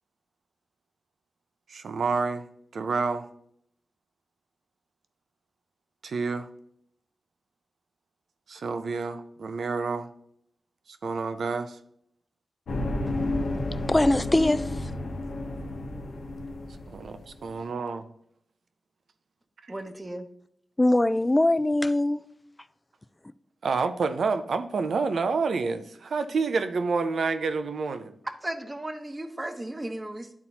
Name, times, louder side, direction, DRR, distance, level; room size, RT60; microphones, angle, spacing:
voice 1, 1.7-2.4 2.7-3.3 6.0-6.5 8.5-10.1 11.0-11.8 16.9-18.0 23.6-28.1, right 4 dB, 80° right, 9 dB, 0.6 m, -28 dB
sound 1, 12.7-17.4, left 2 dB, 90° left, 1.0 m, -31 dB
voice 2, 13.9-14.9 20.8-22.2, left 1 dB, 20° left, 14 dB, 0.3 m, -22 dB
voice 3, 19.7-20.3 28.2-30.4, right 1 dB, 25° right, 6 dB, 0.9 m, -35 dB
11.5 x 4.1 x 2.9 m, 0.70 s
cardioid pair, 70°, 0 cm